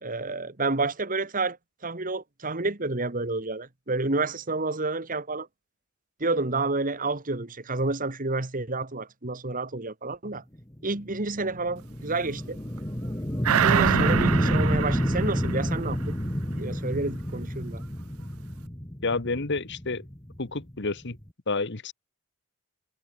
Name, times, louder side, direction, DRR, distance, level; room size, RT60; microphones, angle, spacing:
voice 1, 0.0-1.6 1.8-5.5 6.2-10.4 10.8-12.6 13.6-16.1 16.5-17.8, right 3 dB, 40° right, 1.7 m, -29 dB
sound 1, 10.6-21.3, equal, 15° left, 2.0 m, -29 dB
sound 2, 13.4-16.4 16.7-16.8, right 9 dB, 70° right, 0.4 m, -26 dB
voice 2, 19.0-20.0 20.4-21.2 21.5-21.9, left 3 dB, 50° left, 1.4 m, -29 dB
head